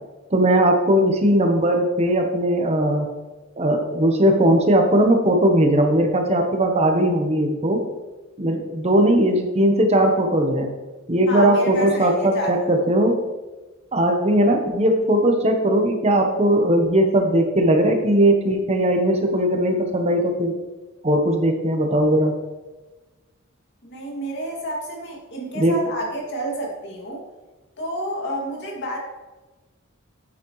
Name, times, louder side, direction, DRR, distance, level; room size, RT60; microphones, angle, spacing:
voice 1, 0.3-3.1 3.6-7.8 8.4-10.7 11.1-13.2 13.9-20.6 21.0-22.3 25.5-25.8, right 1 dB, 30° right, 4 dB, 1.0 m, -19 dB
voice 2, 11.3-12.7 23.8-27.2 27.8-29.0, right 1 dB, 60° left, -2 dB, 2.4 m, -29 dB
8.6 x 8.3 x 3.1 m, 1.2 s
head